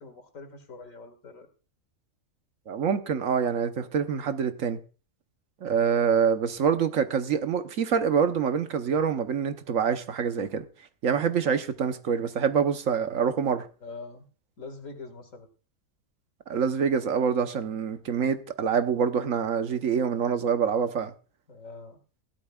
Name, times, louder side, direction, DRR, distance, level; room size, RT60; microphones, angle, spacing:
voice 1, 0.0-1.5 13.8-14.3 14.6-15.5 21.5-22.0, left 3 dB, 70° left, 2.3 m, -43 dB
voice 2, 2.7-4.8 5.6-10.7 11.0-13.7 16.5-21.1, right 7 dB, 70° right, 1.3 m, -26 dB
16.0 x 12.0 x 2.3 m
omnidirectional pair, 1.5 m